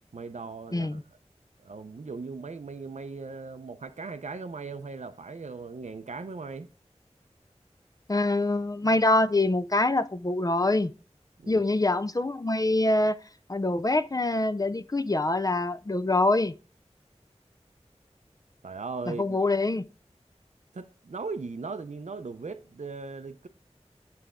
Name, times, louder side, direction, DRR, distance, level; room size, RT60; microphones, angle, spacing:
voice 1, 0.1-1.0 1.6-6.7 11.4-11.7 18.6-19.4 20.7-23.5, right 4 dB, 80° right, 0.5 m, -38 dB
voice 2, 8.1-10.9 11.5-13.2 13.5-16.5 19.1-19.9, left 2 dB, 30° left, 0.4 m, -25 dB
9.2 x 3.4 x 4.8 m
wide cardioid pair, 40°, 12 cm